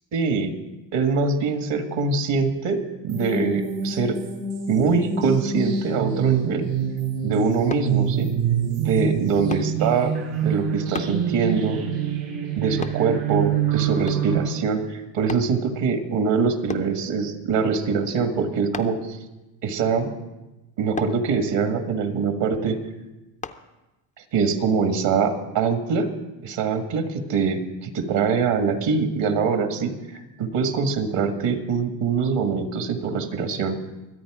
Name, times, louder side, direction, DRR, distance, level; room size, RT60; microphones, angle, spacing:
voice 1, 0.1-0.5 0.9-4.2 4.7-6.7 7.2-8.3 8.8-11.8 12.6-19.2 19.6-20.1 20.8-22.8 24.3-26.1 26.4-33.8, right 5 dB, 60° right, 6 dB, 1.9 m, -23 dB
sound 1, 3.1-14.4, right 7 dB, 75° right, 4.5 m, -26 dB
sound 2, 7.7-7.9 9.5-9.7 10.9-11.2 12.8-13.0 14.1-14.4 15.3-15.5 16.7-16.9 18.7-19.1 21.0-21.2 23.4-23.6 24.2-24.3, left 5 dB, 15° left, 0.5 m, -34 dB
24.0 x 8.6 x 4.9 m, 1.0 s
cardioid pair, 120°, 49 cm